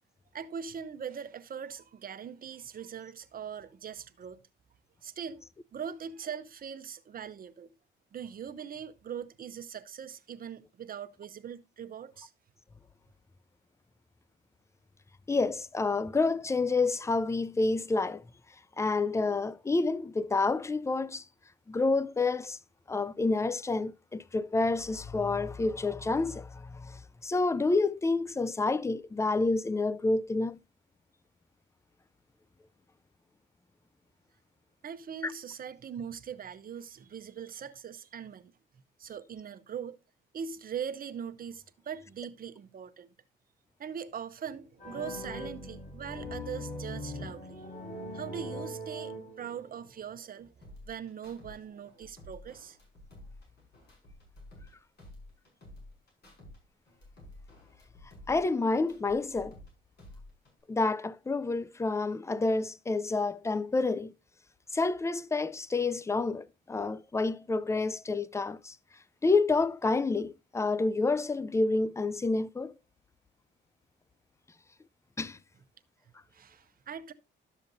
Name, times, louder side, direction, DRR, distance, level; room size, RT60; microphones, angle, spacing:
voice 1, 0.3-4.4 5.0-5.5 5.7-7.7 8.1-12.3 34.8-38.5 39.0-40.0 40.3-43.1 43.8-47.6 48.1-50.5 50.9-52.8 76.3-77.1, right 7 dB, 45° right, 0.8 m, -41 dB
voice 2, 15.3-18.2 18.8-21.2 21.7-22.6 22.9-30.6 35.2-35.3 58.3-59.6 60.7-64.1 64.7-68.7 69.2-72.7 75.2-75.4, left 3 dB, 15° left, 0.4 m, -29 dB
sound 1, 44.8-49.7, left 1 dB, 40° left, 5.9 m, -41 dB
sound 2, 50.6-51.6 51.9-54.7 55.0-56.6 56.9-59.7 60.0-60.6, left 1 dB, 55° left, 5.9 m, -51 dB
12.0 x 7.0 x 2.7 m
cardioid pair, 90°, 20 cm